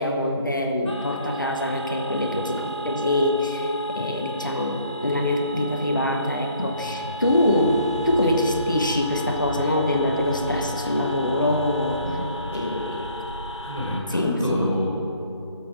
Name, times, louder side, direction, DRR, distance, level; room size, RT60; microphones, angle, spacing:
voice 1, 0.0-12.0 12.5-13.1 14.1-14.7, left 1 dB, 45° left, 3 dB, 1.0 m, -24 dB
sound 1, 0.9-14.0, equal, 85° left, 1.5 m, -35 dB
sound 2, 7.2-13.7, equal, 10° left, 1.1 m, -36 dB
voice 2, 12.0-12.7 13.6-14.9, left 1 dB, 5° right, -16 dB, 0.9 m, -28 dB
12.0 x 7.6 x 6.2 m, 3.0 s
figure-of-eight pair, 175°, 15 cm